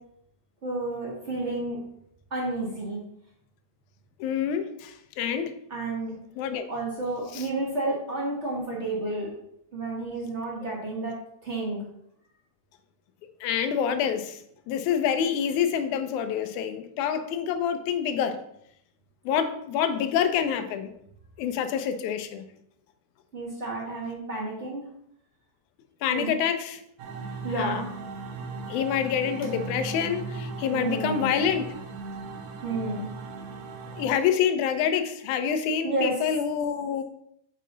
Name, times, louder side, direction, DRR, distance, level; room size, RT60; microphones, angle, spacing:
voice 1, 0.6-1.8 2.3-3.0 5.7-6.1 6.7-9.3 9.7-11.1 11.4-11.8 23.3-24.8 26.1-26.3 27.4-27.9 30.7-31.3 32.6-33.1 35.8-36.1, right 2 dB, 50° right, -3 dB, 0.8 m, -30 dB
voice 2, 4.2-5.6 6.4-6.7 7.3-7.5 10.6-10.7 13.4-18.4 19.3-20.9 21.4-22.4 26.0-26.8 27.5-27.8 28.7-31.7 33.9-37.0, left 8 dB, 80° left, 9 dB, 2.0 m, -27 dB
sound 1, 27.0-34.1, right 4 dB, 85° right, 2.4 m, -37 dB
6.5 x 5.1 x 3.9 m, 0.73 s
omnidirectional pair, 3.6 m